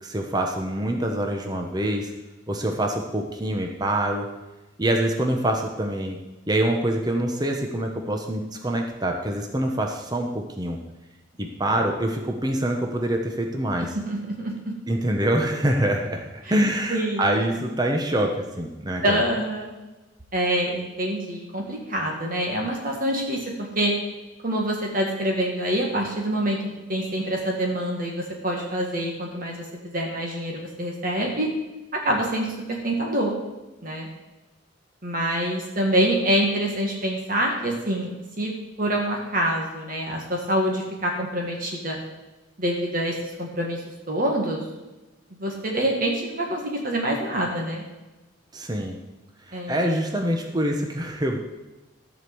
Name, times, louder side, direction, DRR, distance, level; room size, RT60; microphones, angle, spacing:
voice 1, 0.0-2.1 2.5-4.3 4.8-6.2 6.5-10.8 11.4-14.0 14.9-19.2 48.5-49.0 49.5-51.4, right 1 dB, 20° right, 2 dB, 1.0 m, -25 dB
voice 2, 14.1-14.5 16.9-17.3 19.0-19.7 20.3-23.9 24.4-26.6 26.9-31.5 32.0-33.3 33.8-34.1 35.0-38.1 38.4-38.5 38.8-42.0 42.6-43.1 43.4-43.8 44.1-44.6 45.4-47.8 49.5-50.0, right 1 dB, 45° right, 0 dB, 1.9 m, -26 dB
14.5 x 5.1 x 7.9 m, 1.1 s
head